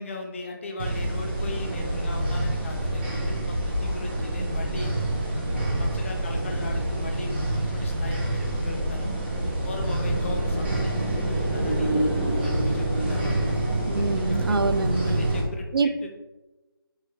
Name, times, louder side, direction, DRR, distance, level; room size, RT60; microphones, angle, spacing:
voice 1, 0.0-4.9 5.3-9.2 9.6-12.1 12.4-13.6 14.0-14.8 15.0-16.1, left 2 dB, 35° left, 2 dB, 0.6 m, -38 dB
sound 1, 0.8-15.4, right 1 dB, 25° right, 0.7 m, -26 dB
voice 2, 13.9-15.2 15.7-16.1, right 4 dB, 70° right, 10 dB, 0.4 m, -25 dB
4.5 x 3.2 x 3.2 m, 1.1 s
figure-of-eight pair, 155°, 12 cm